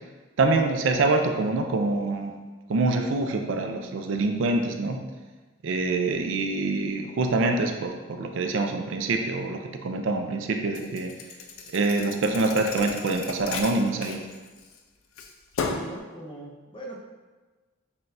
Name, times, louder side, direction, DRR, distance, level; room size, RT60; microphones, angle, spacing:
voice 1, 0.4-2.3 2.7-5.0 5.6-11.1 11.7-14.2, right 3 dB, 70° right, 4 dB, 0.4 m, -25 dB
Thump thud, 10.7-14.8 15.2-16.0, left 4 dB, 80° left, 0.4 m, -35 dB
voice 2, 15.6-17.0, right 1 dB, 25° left, -3 dB, 0.5 m, -40 dB
5.7 x 2.3 x 2.6 m, 1.3 s
head